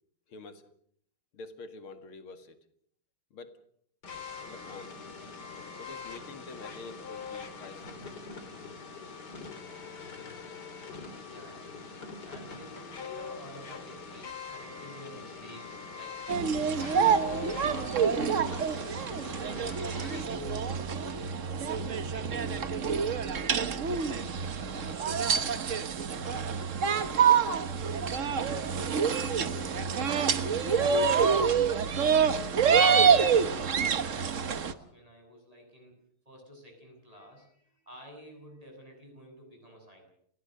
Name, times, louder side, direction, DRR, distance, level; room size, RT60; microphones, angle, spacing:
voice 1, 0.3-0.7 1.3-2.6 3.3-3.6 4.4-5.0 5.8-8.1, left 3 dB, 80° left, 8 dB, 2.8 m, -47 dB
sound 1, 4.0-20.2, left 5 dB, 50° left, 3.0 m, -43 dB
voice 2, 11.2-11.9 12.2-23.6 23.9-24.4 24.7-25.1 26.2-27.3 27.7-31.8 32.2-35.9 36.3-40.1, equal, 15° right, 1 dB, 7.4 m, -50 dB
sound 2, 16.3-34.7, right 6 dB, 45° right, 1.2 m, -27 dB
29.5 x 16.5 x 6.5 m, 0.66 s
omnidirectional pair, 2.3 m